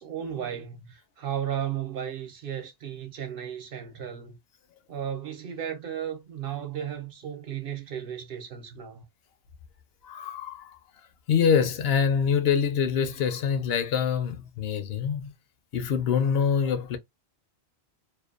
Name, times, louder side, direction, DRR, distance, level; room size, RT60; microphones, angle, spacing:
voice 1, 0.0-4.4 4.9-9.0, right 9 dB, 60° right, 0.8 m, -34 dB
voice 2, 10.0-10.8 11.3-15.3 15.7-17.0, left 7 dB, 70° left, 0.8 m, -25 dB
2.5 x 2.2 x 2.3 m
omnidirectional pair, 1.1 m